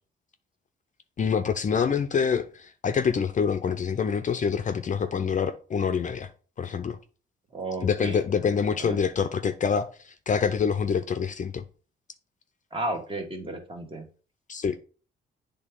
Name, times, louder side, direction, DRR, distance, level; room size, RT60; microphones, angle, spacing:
voice 1, 1.2-6.3 6.6-7.0 7.8-11.6 14.5-14.8, left 6 dB, 40° left, 0.6 m, -26 dB
voice 2, 7.5-8.2 8.8-9.0 12.7-14.1, right 2 dB, 25° right, 1.4 m, -33 dB
8.1 x 3.4 x 3.7 m
cardioid pair, 90°, 20 cm